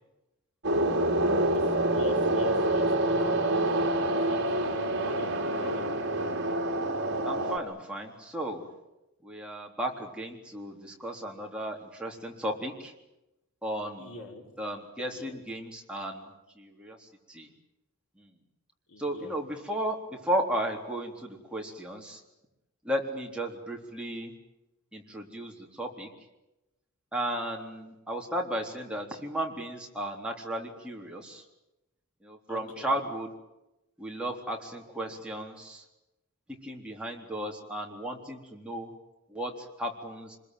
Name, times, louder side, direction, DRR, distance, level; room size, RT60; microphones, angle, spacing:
sound 1, 0.6-7.6, right 1 dB, 55° right, 3.2 m, -27 dB
voice 1, 1.9-3.6 4.2-6.0 14.0-14.5 15.0-15.4 18.9-19.4 32.5-33.0, left 2 dB, 90° left, 1 dB, 5.5 m, -42 dB
voice 2, 7.2-8.7 9.2-12.9 13.6-14.1 14.6-17.5 18.2-18.3 19.0-22.2 22.8-24.3 24.9-26.1 27.1-31.4 32.2-33.3 34.0-35.8 36.6-38.9 39.3-40.4, right 1 dB, 5° right, 0 dB, 3.7 m, -35 dB
26.0 x 21.5 x 9.3 m, 0.95 s
head